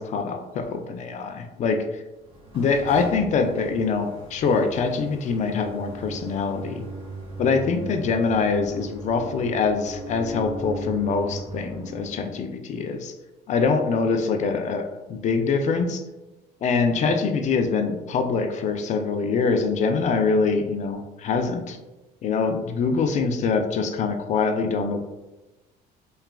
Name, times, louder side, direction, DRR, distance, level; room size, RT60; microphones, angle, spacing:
voice 1, 0.0-1.8 2.5-6.8 7.4-13.1 13.5-16.0 16.6-21.8 22.2-25.0, left 4 dB, 45° left, 6 dB, 0.4 m, -24 dB
sound 1, 2.2-12.5, right 1 dB, 35° right, 0.9 m, -38 dB
3.2 x 2.2 x 2.3 m, 1.1 s
cardioid pair, 110°, 17 cm